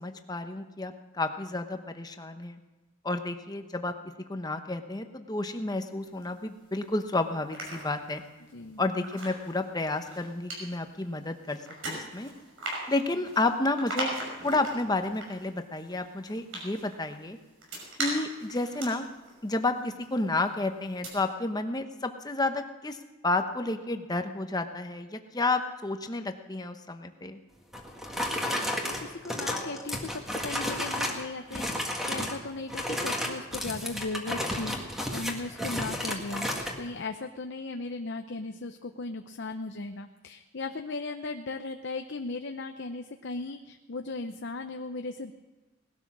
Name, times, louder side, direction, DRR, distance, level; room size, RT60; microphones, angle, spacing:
voice 1, 0.0-2.6 3.0-3.9 4.3-8.2 8.8-12.3 12.9-14.2 14.4-17.4 18.0-19.1 19.4-23.0 23.2-27.4, left 2 dB, 20° left, 7 dB, 0.9 m, -31 dB
sound 1, 6.0-6.9 7.3-20.5 20.8-21.1, right 1 dB, 70° right, 5.9 m, -40 dB
sound 2, 27.7-31.2 31.5-32.4 32.7-36.8, left 1 dB, ahead, 1.7 m, -32 dB
voice 2, 28.3-34.8 35.1-36.5 36.8-45.3, left 3 dB, 55° left, 6 dB, 0.7 m, -37 dB
19.0 x 12.5 x 6.1 m, 1.2 s
head